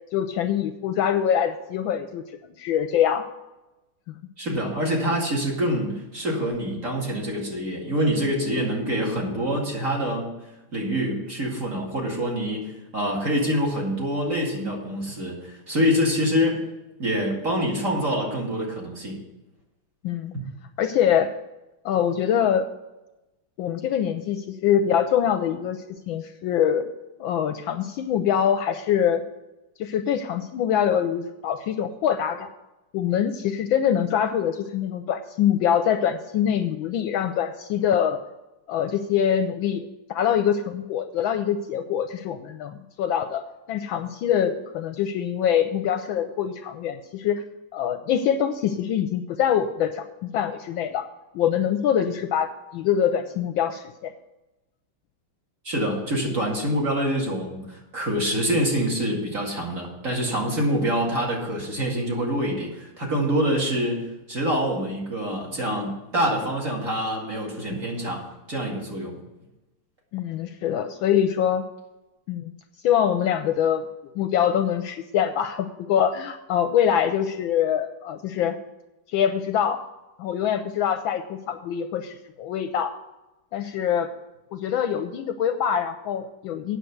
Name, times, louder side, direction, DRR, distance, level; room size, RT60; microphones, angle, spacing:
voice 1, 0.1-2.2 2.6-3.3 20.0-20.3 20.8-21.3 21.8-22.6 23.6-25.8 26.1-26.8 27.2-29.2 29.8-32.5 32.9-38.2 38.7-43.4 43.7-47.4 47.7-51.1 51.3-54.1 70.1-71.6 72.3-72.5 72.8-73.9 74.2-78.6 79.1-79.8 80.2-82.9 83.5-84.1 84.5-86.8, left 9 dB, 75° left, 9 dB, 1.2 m, -24 dB
voice 2, 4.4-16.6 17.0-19.2 55.6-69.2, equal, 35° right, -2 dB, 2.5 m, -26 dB
9.0 x 6.6 x 8.0 m, 0.99 s
omnidirectional pair, 2.4 m